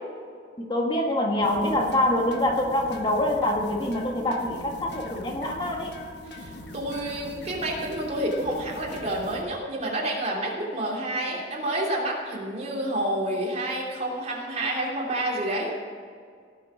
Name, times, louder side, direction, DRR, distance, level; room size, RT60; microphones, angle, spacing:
voice 1, 0.6-5.9, left 1 dB, 30° left, 1 dB, 1.5 m, -25 dB
sound 1, 1.4-9.4, left 1 dB, 75° left, 1.3 m, -41 dB
voice 2, 6.3-15.7, right 1 dB, 40° right, -3 dB, 3.0 m, -29 dB
17.0 x 7.0 x 6.2 m, 2.1 s
head